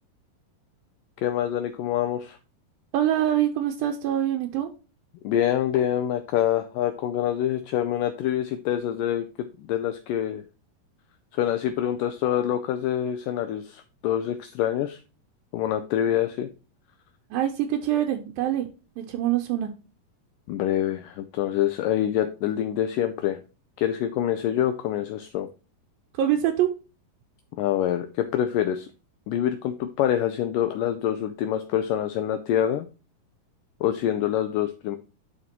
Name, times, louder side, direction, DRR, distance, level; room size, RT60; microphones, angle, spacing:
voice 1, 1.2-2.4 5.2-10.4 11.3-15.0 15.5-16.5 20.5-23.4 23.8-25.5 27.6-28.9 29.3-32.9 33.8-35.0, left 11 dB, 80° left, 2.0 m, -26 dB
voice 2, 2.9-4.7 17.3-18.7 19.0-19.7 26.1-26.7, right 11 dB, 80° right, 2.4 m, -24 dB
11.0 x 4.7 x 2.9 m
omnidirectional pair, 4.3 m